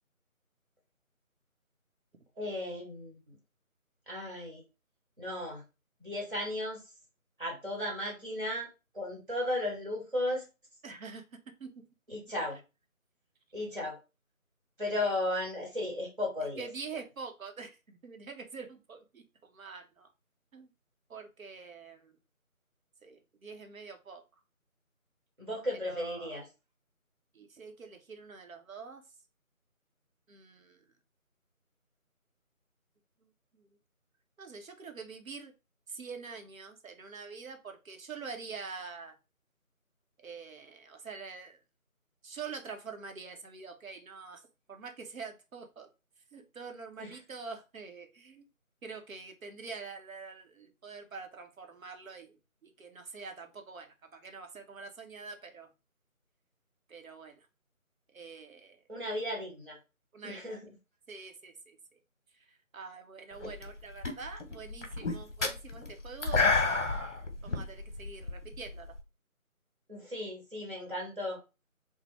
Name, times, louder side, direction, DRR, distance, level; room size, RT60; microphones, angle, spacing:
voice 1, 2.4-3.3 4.1-4.6 5.2-5.6 6.0-6.8 7.4-8.7 8.9-10.4 12.1-12.6 13.5-14.0 14.8-16.7 25.4-26.5 47.0-47.2 58.9-59.8 60.2-60.7 69.9-71.4, left 1 dB, 40° right, -2 dB, 1.1 m, -35 dB
voice 2, 10.8-11.2 11.6-11.8 14.9-15.1 16.6-20.1 20.5-20.7 21.1-22.1 23.0-24.2 25.8-26.3 27.3-29.0 30.3-30.8 33.6-33.7 34.4-35.5 35.9-39.1 40.2-41.6 42.2-44.4 44.7-45.9 46.3-48.5 48.8-52.4 52.6-55.7 56.9-57.4 58.1-58.8 60.1-60.6 61.1-61.8 62.7-67.2 67.4-69.0, right 5 dB, 70° right, 5 dB, 0.7 m, -45 dB
sound 1, 63.4-63.7 64.0-69.0, left 3 dB, 55° left, 0.8 m, -30 dB
2.9 x 2.1 x 3.0 m, 0.28 s
figure-of-eight pair, 180°, 42 cm